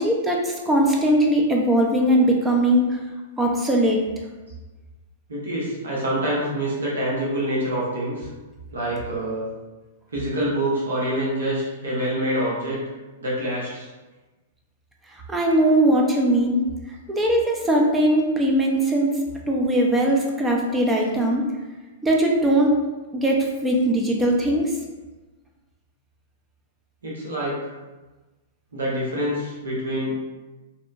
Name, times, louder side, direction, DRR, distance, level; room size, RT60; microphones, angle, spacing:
voice 1, 0.0-3.0 3.4-4.0 15.3-16.6 17.1-19.2 19.5-21.5 22.0-22.7 23.1-24.7, right 1 dB, 15° right, 0 dB, 0.5 m, -20 dB
voice 2, 5.3-8.3 8.7-9.5 10.1-12.8 13.2-13.9 27.0-27.7 28.7-30.2, right 1 dB, 85° right, -6 dB, 1.0 m, -26 dB
2.8 x 2.1 x 2.5 m, 1.2 s
hypercardioid pair, 120°, 0 cm